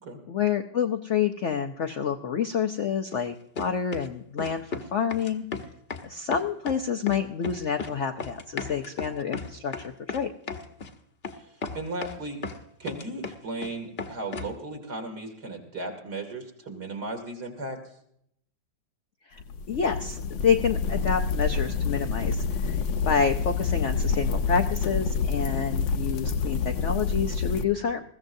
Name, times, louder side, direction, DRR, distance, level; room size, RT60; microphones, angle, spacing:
voice 1, 0.3-5.4 6.0-9.7 10.1-10.3 19.3-19.4 19.7-22.8 23.0-28.0, left 7 dB, 65° left, 5 dB, 0.7 m, -28 dB
sound 1, 3.1-3.3 3.6-4.1 4.4-4.9 5.1-6.1 6.3-6.8 7.1-7.9 8.2-10.9 11.2-11.4 11.6-12.6 12.9-13.7 14.0-14.6, left 4 dB, 40° left, 1.0 m, -35 dB
voice 2, 11.3-12.4 12.8-17.8, right 2 dB, 60° right, 2 dB, 3.0 m, -36 dB
sound 2, 19.4-27.6, left 5 dB, 80° left, 1.4 m, -27 dB
20.5 x 15.5 x 2.6 m, 0.71 s
omnidirectional pair, 2.0 m